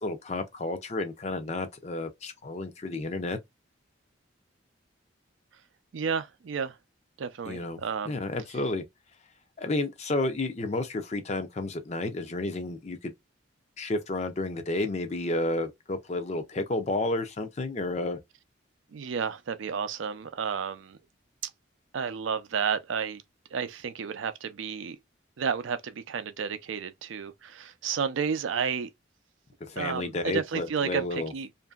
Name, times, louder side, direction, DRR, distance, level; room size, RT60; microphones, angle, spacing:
voice 1, 0.0-3.4 7.4-8.8 9.6-13.1 13.8-18.2 29.6-31.3, left 2 dB, 35° left, 0.5 m, -31 dB
voice 2, 5.9-6.8 7.2-8.2 18.9-21.0 21.4-21.5 21.9-23.2 23.5-25.0 25.4-28.9 29.8-31.5, right 6 dB, 75° right, 0.4 m, -31 dB
2.8 x 2.6 x 2.3 m
head